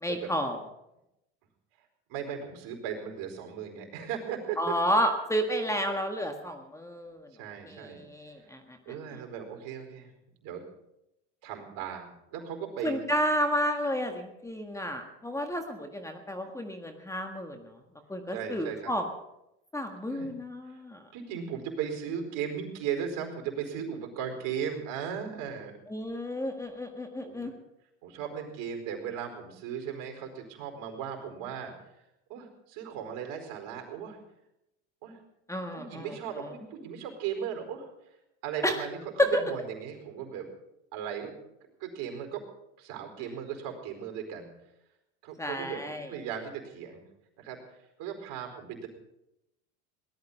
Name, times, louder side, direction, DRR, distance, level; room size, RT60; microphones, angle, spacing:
voice 1, 0.0-0.6 4.6-7.3 7.6-8.8 12.8-17.6 18.1-19.0 19.7-21.0 25.9-27.5 35.5-36.5 38.6-38.8 39.2-39.4 45.4-46.1, equal, 10° left, 5 dB, 1.6 m, -31 dB
voice 2, 2.1-4.7 7.4-8.0 8.4-8.5 8.9-10.1 10.4-10.6 11.4-13.0 18.3-18.9 20.1-20.3 20.7-20.8 21.1-25.8 27.2-27.5 28.0-31.7 32.3-34.2 35.0-35.2 35.7-37.9 38.4-40.5 40.9-41.4 41.8-42.4 42.8-44.5 45.2-47.0 47.4-47.6 48.0-48.9, right 8 dB, 60° right, 4 dB, 4.6 m, -37 dB
18.5 x 12.5 x 5.5 m, 0.86 s
supercardioid pair, 110°, 36 cm